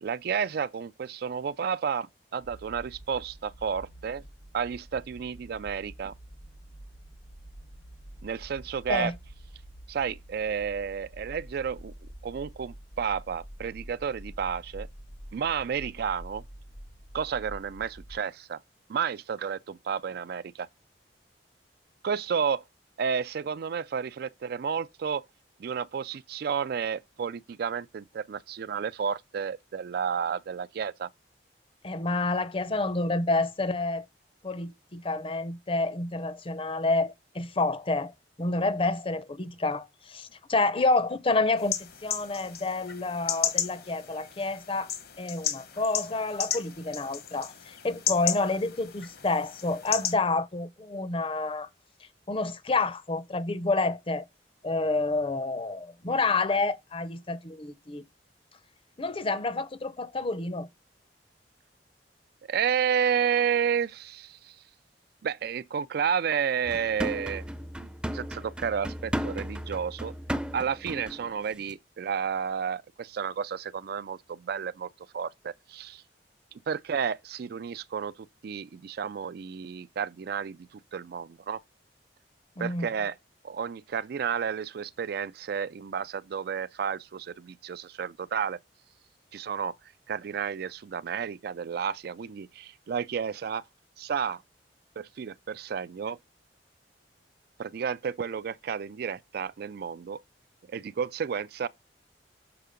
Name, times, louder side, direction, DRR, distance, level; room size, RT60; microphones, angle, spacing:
voice 1, 0.0-4.2 4.5-6.1 8.2-9.1 9.9-11.9 12.2-14.9 15.3-16.4 17.1-18.6 18.9-20.7 22.0-22.6 23.0-25.2 25.6-31.1 62.5-64.5 65.2-67.4 68.1-70.1 70.5-74.9 75.1-76.0 76.7-78.1 78.4-81.6 82.6-83.1 83.4-88.6 89.3-89.7 90.1-93.6 94.0-94.4 95.0-96.2 97.6-100.2 100.7-101.7, right 7 dB, 60° right, 0.4 m, -31 dB
sound 1, 2.4-18.2, right 1 dB, 85° left, 3.5 m, -47 dB
voice 2, 31.8-34.0 34.4-38.1 38.4-44.9 45.2-51.7 52.3-54.2 54.6-58.0 59.0-60.7 82.6-82.9, left 3 dB, 30° left, 0.7 m, -29 dB
sound 2, 41.6-50.1, left 9 dB, 60° left, 1.2 m, -34 dB
sound 3, 66.6-71.3 71.6-71.7, equal, 5° right, 0.5 m, -35 dB
6.9 x 4.5 x 5.0 m
head